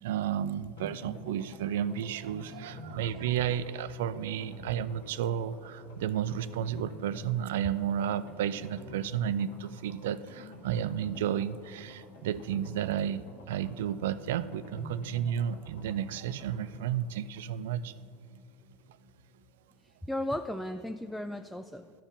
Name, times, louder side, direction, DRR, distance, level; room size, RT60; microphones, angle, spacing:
voice 1, 0.0-17.9, right 9 dB, 70° right, 16 dB, 0.3 m, -32 dB
sound 1, 0.8-19.4 19.7-19.8 20.0-20.1, left 2 dB, 75° left, 2.1 m, -49 dB
voice 2, 20.0-21.9, left 1 dB, 5° left, 8 dB, 0.4 m, -36 dB
13.0 x 4.5 x 7.0 m, 2.2 s
hypercardioid pair, 80°, 0 cm